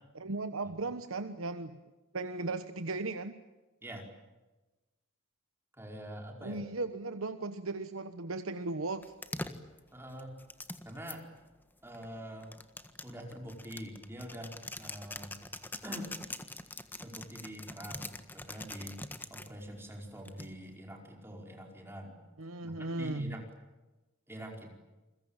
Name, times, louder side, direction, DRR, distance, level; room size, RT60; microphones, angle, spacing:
voice 1, 0.1-1.8 2.1-3.3 6.4-9.0 22.4-23.4, right 3 dB, 80° right, 9 dB, 1.2 m, -36 dB
voice 2, 5.8-6.6 9.9-10.4 10.8-11.2 11.8-12.5 13.0-15.3 15.8-16.1 17.0-19.0 19.3-22.2 22.6-23.5 24.3-24.7, equal, 10° right, 1 dB, 5.0 m, -45 dB
sound 1, 9.0-11.2 11.9-19.5 20.3-20.7, left 2 dB, 10° left, 1.6 m, -43 dB
29.0 x 22.0 x 9.0 m, 1.1 s
head